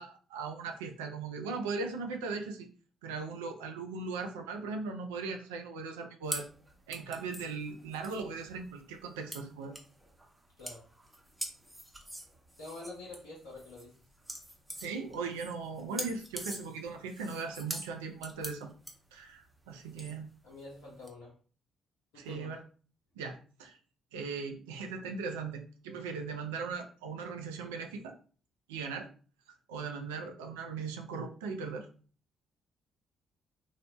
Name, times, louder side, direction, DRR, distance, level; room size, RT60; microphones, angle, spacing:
voice 1, 0.0-2.7 3.0-6.5 6.9-9.7 14.8-18.7 19.1-20.3 22.1-22.6 23.2-23.8 24.1-28.1 28.7-29.1 29.7-31.9, right 4 dB, 80° right, 4 dB, 0.4 m, -38 dB
sound 1, 6.2-21.1, right 1 dB, 10° right, 0.8 m, -45 dB
voice 2, 12.6-13.9 20.4-21.4 22.1-22.5, left 2 dB, 75° left, -5 dB, 0.6 m, -47 dB
2.8 x 2.0 x 2.8 m, 0.40 s
hypercardioid pair, 45°, 0 cm